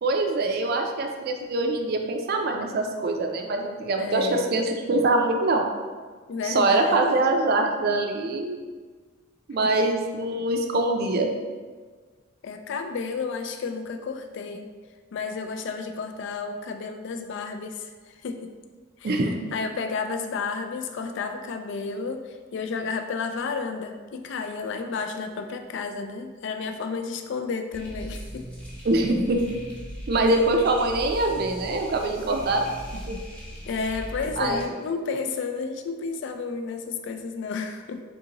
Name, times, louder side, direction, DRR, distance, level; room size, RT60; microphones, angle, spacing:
voice 1, 0.0-5.7 6.4-8.6 9.5-11.3 19.0-19.4 28.8-29.4 30.1-32.7 33.1-33.2 34.4-34.7, right 2 dB, 50° right, 3 dB, 0.4 m, -24 dB
voice 2, 4.0-4.6 6.3-7.2 9.6-9.7 12.4-14.7 15.1-18.5 19.0-19.2 19.5-28.5 33.7-38.0, left 4 dB, 60° left, 6 dB, 0.3 m, -32 dB
sound 1, 27.7-34.6, equal, 5° left, 0.7 m, -39 dB
3.8 x 3.6 x 2.9 m, 1.4 s
head